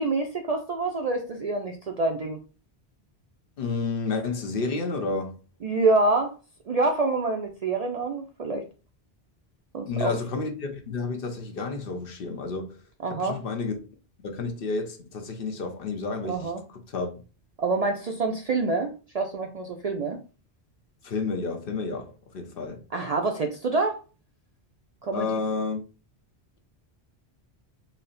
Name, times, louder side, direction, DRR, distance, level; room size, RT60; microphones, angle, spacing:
voice 1, 0.0-2.4 5.6-6.3 6.7-8.6 9.7-10.1 13.0-13.4 16.2-16.6 17.6-20.2 22.9-24.0 25.0-25.4, right 3 dB, 55° right, 0.4 m, -26 dB
voice 2, 3.6-5.4 9.9-12.8 13.2-13.8 14.2-17.1 21.0-22.8 25.1-25.8, left 4 dB, 60° left, 0.9 m, -30 dB
4.1 x 2.0 x 3.8 m
omnidirectional pair, 1.1 m